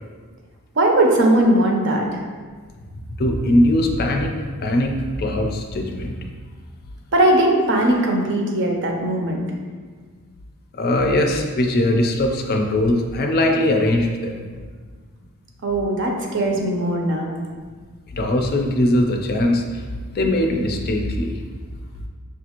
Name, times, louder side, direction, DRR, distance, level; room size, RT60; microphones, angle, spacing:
voice 1, 0.8-2.2 7.1-9.5 15.6-17.3, right 1 dB, 55° right, 1 dB, 0.6 m, -19 dB
voice 2, 3.2-6.2 10.8-14.4 18.1-21.4, left 1 dB, 45° left, 2 dB, 0.4 m, -20 dB
5.5 x 2.5 x 2.9 m, 1.5 s
head